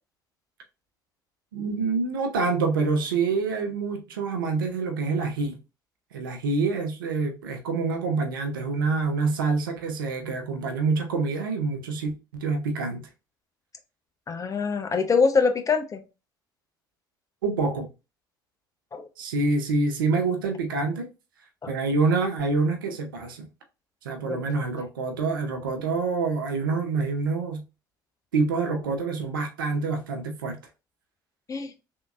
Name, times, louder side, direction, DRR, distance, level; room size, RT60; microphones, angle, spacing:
voice 1, 1.5-5.6 6.1-13.0 17.4-17.9 19.2-21.1 21.7-23.5 24.0-27.6 28.3-30.6, right 4 dB, 85° right, 0.7 m, -26 dB
voice 2, 14.3-16.0 18.9-19.1 21.6-21.7 24.3-24.5 31.5-31.7, left 5 dB, 30° left, 0.7 m, -24 dB
3.5 x 2.8 x 2.4 m
hypercardioid pair, 60°, 11 cm